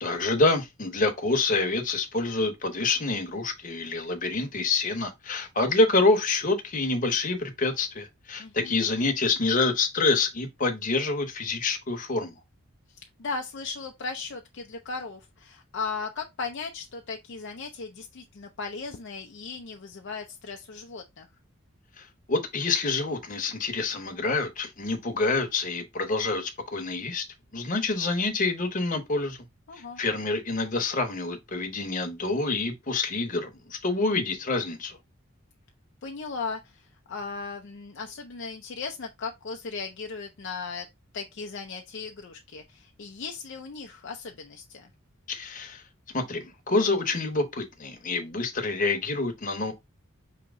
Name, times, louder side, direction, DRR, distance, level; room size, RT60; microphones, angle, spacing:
voice 1, 0.0-12.4 22.0-27.3 27.5-29.4 30.0-35.0 45.3-45.8 46.1-49.7, left 3 dB, 40° left, 0.9 m, -27 dB
voice 2, 8.4-8.8 13.2-21.3 29.7-30.0 36.0-40.9 41.1-44.9, left 4 dB, 55° left, 0.5 m, -37 dB
5.0 x 2.9 x 3.5 m
head